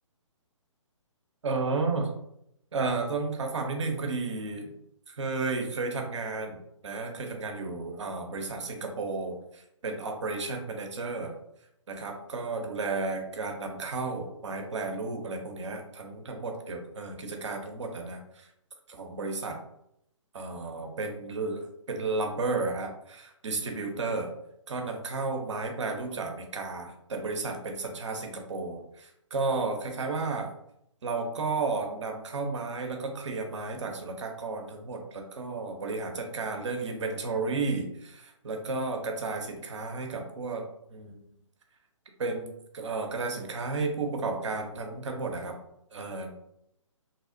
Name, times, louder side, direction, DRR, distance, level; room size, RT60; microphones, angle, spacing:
voice 1, 1.4-2.1 2.7-4.7 5.2-11.3 11.9-18.2 18.9-19.6 20.3-24.3 24.7-30.5 31.0-40.6 40.9-41.2 42.2-45.6 45.9-46.3, right 3 dB, 65° right, 4 dB, 0.6 m, -33 dB
2.7 x 2.0 x 2.5 m, 0.77 s
figure-of-eight pair, 130°, 17 cm